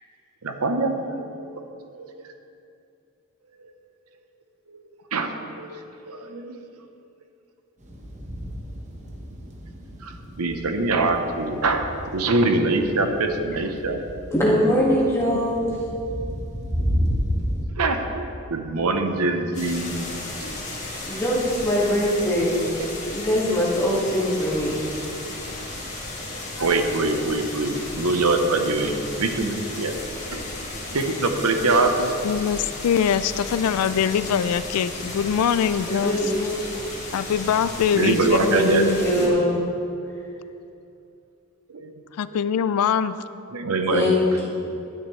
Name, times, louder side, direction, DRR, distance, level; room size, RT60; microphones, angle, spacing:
voice 1, 0.4-1.7 2.0-2.1 4.7-4.8 5.1-6.6 10.0-11.8 12.1-14.0 17.8-20.1 20.4-20.6 22.8-22.9 26.2-29.9 30.3-30.5 30.9-32.1 37.9-38.9 39.1-39.5 41.7-42.0 42.3-42.4 43.5-44.5, right 3 dB, 80° right, 5 dB, 0.9 m, -24 dB
sound 1, 7.8-17.7, equal, 30° right, 1.1 m, -32 dB
voice 2, 14.3-15.7 21.1-22.6 23.1-24.8 35.9-36.5 38.5-39.6 43.8-44.5, left 1 dB, 10° left, -6 dB, 1.8 m, -22 dB
sound 2, 19.5-39.3, left 2 dB, 30° left, 1.9 m, -34 dB
voice 3, 32.2-36.2 37.1-39.0 42.2-43.2, left 8 dB, 85° left, 14 dB, 0.3 m, -23 dB
12.0 x 9.8 x 3.2 m, 2.6 s
head